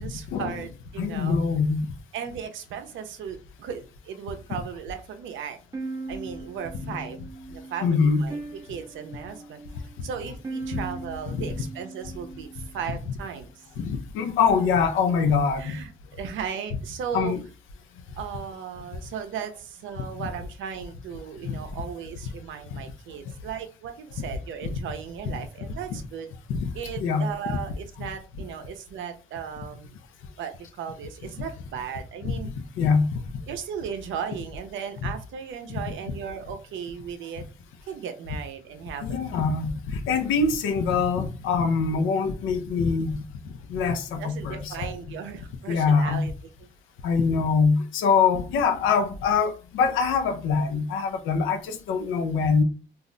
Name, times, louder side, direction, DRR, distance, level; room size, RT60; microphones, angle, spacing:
voice 1, 0.0-1.4 2.1-5.6 6.1-7.2 7.5-8.4 8.7-9.6 10.0-13.6 15.0-15.1 15.6-17.3 18.2-26.3 26.7-30.0 30.4-32.5 33.5-37.4 37.9-39.1 44.2-46.3, right 8 dB, 80° right, 0.5 m, -36 dB
voice 2, 1.0-1.9 4.5-4.6 6.8-7.0 7.8-8.2 10.7-10.8 11.3-11.4 13.8-15.8 17.1-17.4 20.1-20.3 21.4-21.6 24.6-24.7 25.2-25.4 25.9-26.0 26.5-26.7 27.0-27.6 28.0-28.1 32.2-32.3 32.8-33.1 39.0-44.9 45.7-46.3 47.0-52.6, left 5 dB, 85° left, 0.6 m, -24 dB
sound 1, 5.7-12.8, right 3 dB, 15° right, 0.6 m, -39 dB
2.4 x 2.1 x 3.7 m
cardioid pair, 90°, 20 cm